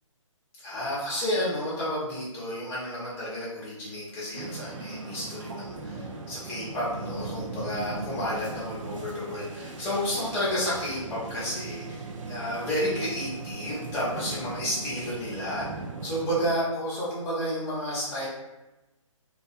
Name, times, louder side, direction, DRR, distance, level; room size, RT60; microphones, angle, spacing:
voice 1, 0.6-15.7 16.0-18.3, equal, 15° left, -8 dB, 0.7 m, -31 dB
sound 1, 4.3-16.5, right 3 dB, 70° right, 0.4 m, -38 dB
2.3 x 2.1 x 2.6 m, 1.1 s
hypercardioid pair, 155°, 17 cm